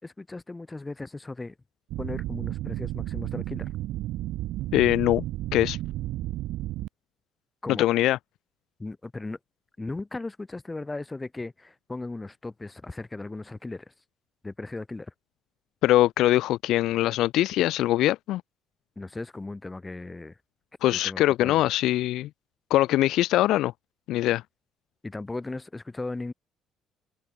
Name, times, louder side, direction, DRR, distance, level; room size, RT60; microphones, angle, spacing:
voice 1, 0.0-1.5 2.0-3.7 7.6-7.9 8.8-9.4 9.8-13.9 14.4-15.1 19.0-20.4 20.9-21.6 25.0-26.3, left 2 dB, 15° left, 2.7 m, -37 dB
sound 1, 1.9-6.9, right 15 dB, 80° right, 1.3 m, -32 dB
voice 2, 4.7-5.2 5.5-5.8 7.7-8.2 15.8-18.4 20.8-22.3 22.7-23.7 24.1-24.4, left 15 dB, 75° left, 0.3 m, -22 dB
cardioid pair, 140°, 0 cm